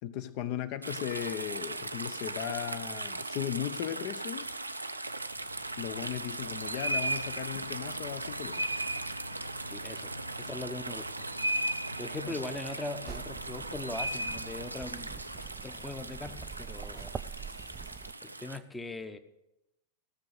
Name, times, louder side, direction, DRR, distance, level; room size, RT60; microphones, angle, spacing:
voice 1, 0.0-4.5 5.8-8.7 12.2-12.3, left 11 dB, 45° left, 0.7 m, -37 dB
sound 1, 0.8-18.6, right 2 dB, 85° right, 0.5 m, -37 dB
sound 2, 5.2-16.1, left 2 dB, 80° left, 1.2 m, -55 dB
voice 2, 9.7-11.3 12.0-17.1 18.2-19.2, left 2 dB, 10° left, 0.8 m, -41 dB
sound 3, 13.1-18.1, right 6 dB, 20° right, 0.3 m, -45 dB
16.5 x 6.4 x 6.5 m
figure-of-eight pair, 90°, 0 cm